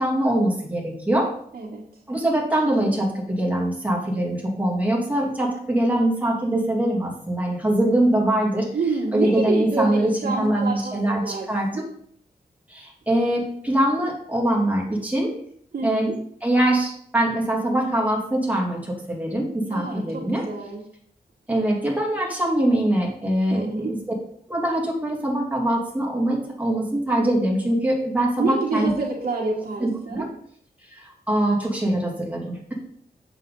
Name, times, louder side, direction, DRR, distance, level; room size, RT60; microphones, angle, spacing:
voice 1, 0.0-1.3 2.1-8.7 9.1-11.9 12.7-15.3 15.8-20.5 21.5-24.0 24.5-28.9 29.8-30.3 30.9-32.7, right 1 dB, 10° right, -3 dB, 2.9 m, -23 dB
voice 2, 8.7-11.8 15.7-16.2 19.7-20.8 21.5-21.7 23.5-23.9 28.4-30.3, right 3 dB, 70° right, -4 dB, 1.8 m, -28 dB
8.3 x 7.0 x 4.0 m, 0.64 s
wide cardioid pair, 105°, 16 cm